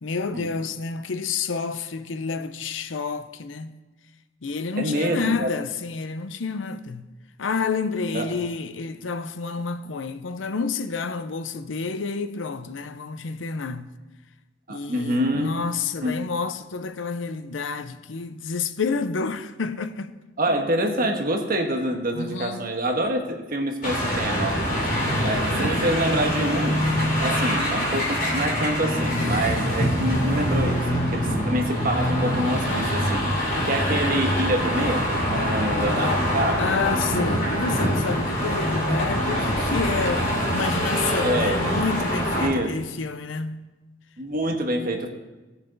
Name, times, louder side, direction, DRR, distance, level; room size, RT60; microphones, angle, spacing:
voice 1, 0.0-3.7 4.4-7.1 7.4-13.9 14.7-20.1 22.1-22.7 24.8-25.2 27.3-27.5 35.7-36.2 36.6-43.6, left 4 dB, 90° left, 0.6 m, -29 dB
voice 2, 4.8-5.5 8.1-8.3 14.7-15.5 16.0-16.1 20.4-24.6 25.2-26.9 27.2-33.3 33.6-36.8 41.2-41.6 42.4-42.7 44.2-45.1, right 1 dB, 50° right, 1.4 m, -26 dB
sound 1, 23.8-42.5, equal, 45° left, 2.7 m, -24 dB
16.5 x 7.1 x 3.9 m
head